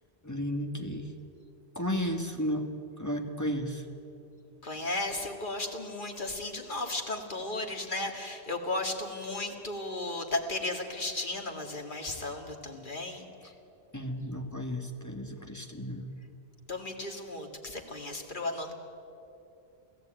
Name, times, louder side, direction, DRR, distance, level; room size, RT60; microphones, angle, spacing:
voice 1, 0.2-1.1 1.8-2.7 3.0-3.8 13.9-16.1, equal, 15° left, 4 dB, 1.7 m, -33 dB
voice 2, 4.6-13.2 16.7-18.8, left 2 dB, 50° left, 3 dB, 2.5 m, -35 dB
28.0 x 16.5 x 9.1 m, 2.8 s
omnidirectional pair, 1.1 m